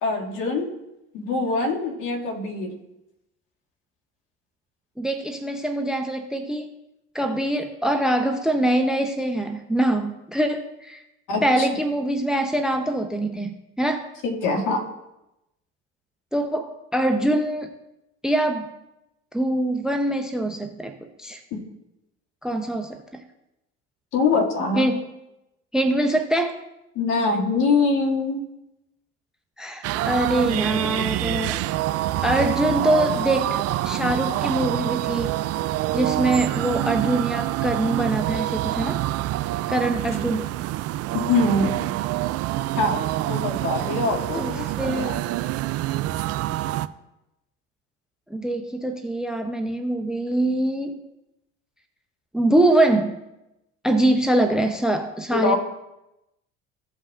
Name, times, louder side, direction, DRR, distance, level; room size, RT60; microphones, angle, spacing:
voice 1, 0.0-0.7 1.1-2.7 11.3-11.7 14.2-14.8 21.5-21.6 24.1-24.9 26.9-28.4 41.1-41.9 42.8-45.2 55.3-55.6, left 3 dB, 55° left, -2 dB, 2.2 m, -24 dB
voice 2, 5.0-6.7 7.1-11.0 11.4-13.5 13.8-14.1 16.3-17.7 18.2-18.7 19.3-21.4 22.4-23.0 24.8-25.0 25.7-26.6 29.6-31.6 32.2-35.3 35.9-39.0 39.7-40.5 44.3-45.4 48.3-51.0 52.3-53.2 53.8-55.6, right 1 dB, ahead, 7 dB, 0.7 m, -23 dB
sound 1, 29.8-46.9, right 15 dB, 45° right, 0.5 m, -26 dB
15.5 x 5.5 x 2.5 m, 0.91 s
hypercardioid pair, 70°, 35 cm